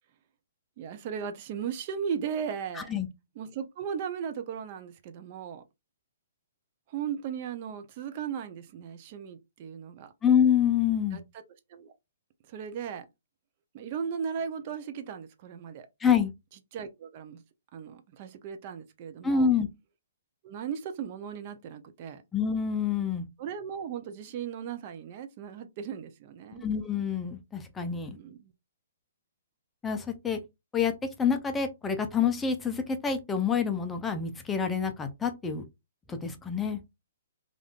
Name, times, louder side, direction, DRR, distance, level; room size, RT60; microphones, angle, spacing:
voice 1, 0.8-2.9 3.4-5.6 6.9-10.1 11.1-11.2 11.7-11.9 12.5-13.1 13.7-15.9 16.7-17.4 17.7-19.5 20.4-22.2 23.4-26.7 28.1-28.5, right 7 dB, 40° right, 0.5 m, -37 dB
voice 2, 2.7-3.1 10.2-11.2 16.0-16.3 19.2-19.7 22.3-23.2 26.6-28.2 29.8-30.4 30.7-30.9 31.2-35.7 36.1-36.8, left 7 dB, 10° left, 0.5 m, -27 dB
3.4 x 2.5 x 2.4 m
hypercardioid pair, 140°, 0 cm